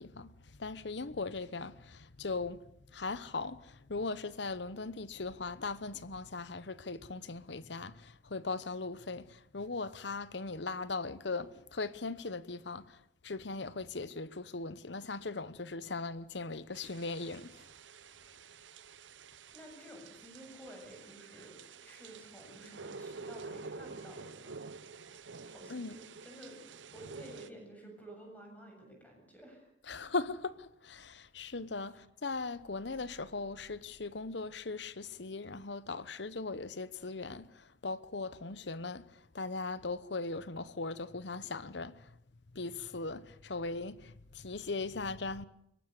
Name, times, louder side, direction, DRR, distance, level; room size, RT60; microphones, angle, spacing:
voice 1, 0.0-17.7 25.7-26.0 29.9-42.2 42.5-45.4, left 3 dB, 70° left, 1.0 m, -39 dB
sound 1, 16.7-27.5, right 4 dB, 85° right, 0.9 m, -49 dB
voice 2, 19.5-24.6 25.4-26.6 26.9-29.7 31.9-32.0, right 1 dB, 10° left, 7.6 m, -52 dB
22.5 x 18.5 x 8.3 m
head